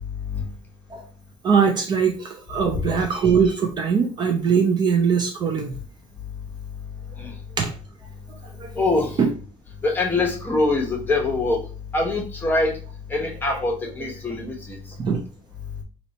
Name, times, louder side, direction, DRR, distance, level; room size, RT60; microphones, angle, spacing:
voice 1, 1.4-5.8 7.6-7.7 8.3-8.7 9.2-9.3 13.5-13.6 15.0-15.2, right 6 dB, 35° right, 4 dB, 0.5 m, -21 dB
voice 2, 8.8-9.1 9.8-11.6 11.9-12.7 13.1-14.8, left 2 dB, 15° left, -1 dB, 1.0 m, -23 dB
2.9 x 2.8 x 4.1 m, 0.39 s
cardioid pair, 140°, 13 cm